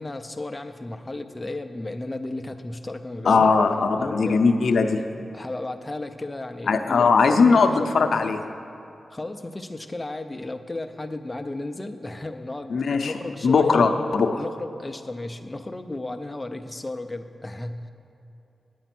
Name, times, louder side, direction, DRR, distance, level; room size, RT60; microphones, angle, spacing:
voice 1, 0.0-3.5 4.0-4.6 5.3-7.9 9.1-17.9, left 2 dB, 15° left, 7 dB, 0.5 m, -34 dB
voice 2, 3.3-5.0 6.7-8.4 12.7-13.1 13.4-14.4, left 4 dB, 65° left, 6 dB, 0.6 m, -19 dB
9.2 x 9.0 x 6.0 m, 2.8 s
wide cardioid pair, 155°, 0 cm